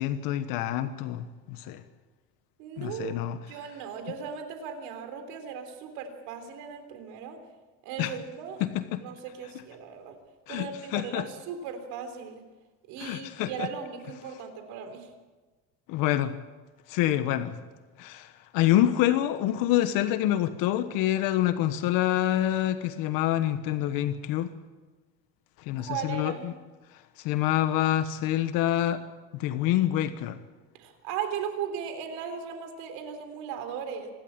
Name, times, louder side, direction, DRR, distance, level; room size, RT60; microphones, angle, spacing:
voice 1, 0.0-1.8 2.8-3.4 8.0-8.1 8.6-9.0 10.5-11.3 13.0-13.7 15.9-16.3 16.9-17.5 18.0-24.5 25.7-26.5 27.2-29.0 29.3-30.4, left 13 dB, 70° left, 10 dB, 1.3 m, -27 dB
voice 2, 2.6-7.4 7.8-8.6 9.0-10.1 10.5-12.4 12.9-15.1 25.8-26.5 30.7-34.1, right 7 dB, 80° right, 7 dB, 3.7 m, -37 dB
26.0 x 12.5 x 8.8 m, 1.3 s
cardioid pair, 145°, 35 cm